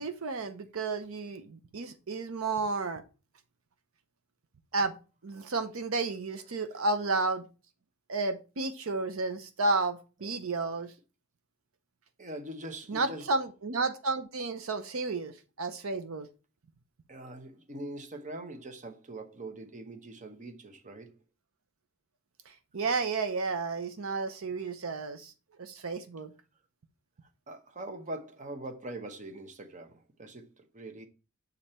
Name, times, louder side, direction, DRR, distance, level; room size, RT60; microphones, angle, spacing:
voice 1, 0.0-3.0 4.7-4.9 5.2-7.5 8.1-10.9 12.9-16.3 22.5-25.3 25.6-26.3, right 3 dB, 70° right, 0.7 m, -32 dB
voice 2, 12.2-13.3 17.1-21.1 27.5-31.1, right 1 dB, 35° right, 0.9 m, -42 dB
7.2 x 3.9 x 4.3 m
head